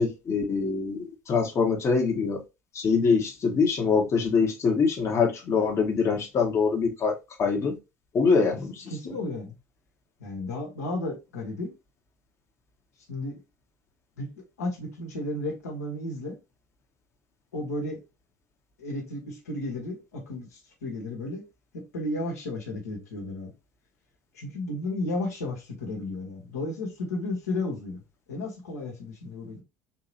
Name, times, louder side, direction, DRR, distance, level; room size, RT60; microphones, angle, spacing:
voice 1, 0.0-2.4 2.7-7.8 8.1-8.8, left 5 dB, 35° left, 1.1 m, -24 dB
voice 2, 8.9-9.5 10.2-11.7 13.1-13.4 14.2-14.3 14.6-16.4 17.5-18.0 18.8-21.4 21.7-23.5 24.3-28.0 28.3-29.6, left 2 dB, 75° left, 1.3 m, -33 dB
4.1 x 2.9 x 2.8 m
figure-of-eight pair, 65°, 8 cm